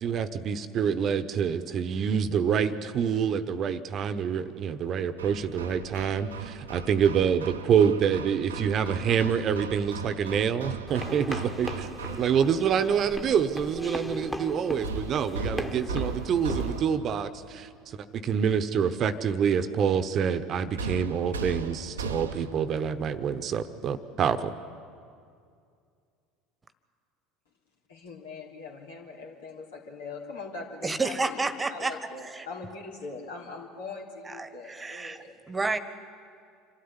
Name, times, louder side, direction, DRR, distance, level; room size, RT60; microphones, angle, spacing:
voice 1, 0.0-11.9 12.2-17.7 18.1-24.5, right 7 dB, 45° right, 12 dB, 1.1 m, -26 dB
Hammer, 5.2-12.6 14.8-17.2 20.8-22.7, right 4 dB, 85° right, 0.9 m, -37 dB
sound 1, 10.9-16.8, equal, 5° left, 1.6 m, -38 dB
voice 2, 27.9-35.3, left 3 dB, 75° left, -1 dB, 3.4 m, -41 dB
voice 3, 30.8-32.0 32.2-32.5 34.2-35.8, right 3 dB, 20° right, 12 dB, 1.4 m, -30 dB
26.5 x 13.0 x 10.0 m, 2.3 s
hypercardioid pair, 70°, 0 cm